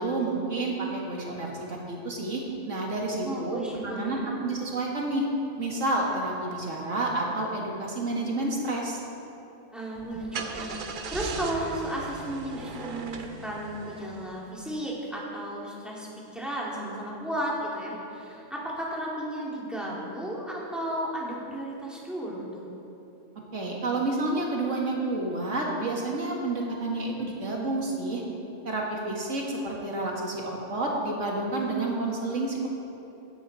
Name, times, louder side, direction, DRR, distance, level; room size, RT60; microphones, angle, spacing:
voice 1, 0.0-5.3 5.6-9.0 23.5-28.2 28.6-32.7, right 2 dB, 90° right, -2 dB, 2.3 m, -30 dB
voice 2, 3.2-4.3 9.7-16.1 16.3-22.6, right 1 dB, ahead, -6 dB, 2.6 m, -34 dB
Car / Engine starting, 10.0-14.6, right 4 dB, 50° right, 0.8 m, -38 dB
16.0 x 10.5 x 4.1 m, 2.9 s
omnidirectional pair, 1.3 m